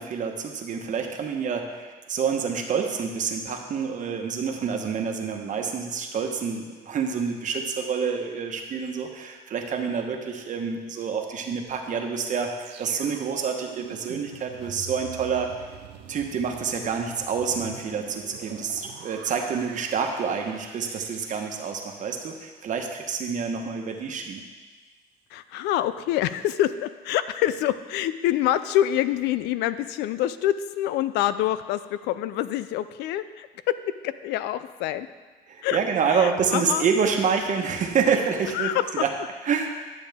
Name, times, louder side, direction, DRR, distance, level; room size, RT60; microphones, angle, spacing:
voice 1, 0.0-15.5 16.1-24.4 35.5-39.1 39.4-39.7, right 6 dB, 50° right, 3 dB, 1.1 m, -27 dB
sound 1, 12.6-23.7 24.0-24.2, right 9 dB, 85° right, 0.6 m, -45 dB
voice 2, 25.3-33.5 34.0-35.1 35.6-35.8 36.1-36.9 38.5-38.8, left 12 dB, 90° left, 13 dB, 0.4 m, -26 dB
11.0 x 7.0 x 3.5 m, 1.3 s
cardioid pair, 110°, 17 cm